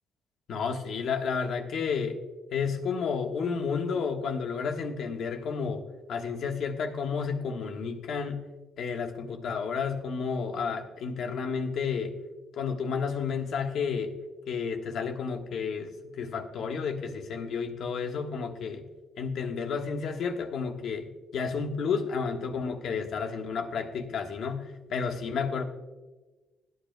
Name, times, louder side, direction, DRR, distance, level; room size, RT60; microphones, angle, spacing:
voice 1, 0.5-2.2 2.5-5.8 6.1-8.5 8.8-12.1 12.5-14.1 14.5-15.9 16.2-18.8 19.2-25.6, left 5 dB, 70° left, 5 dB, 1.3 m, -31 dB
17.0 x 9.5 x 2.2 m, 1.2 s
cardioid pair, 90°, 0 cm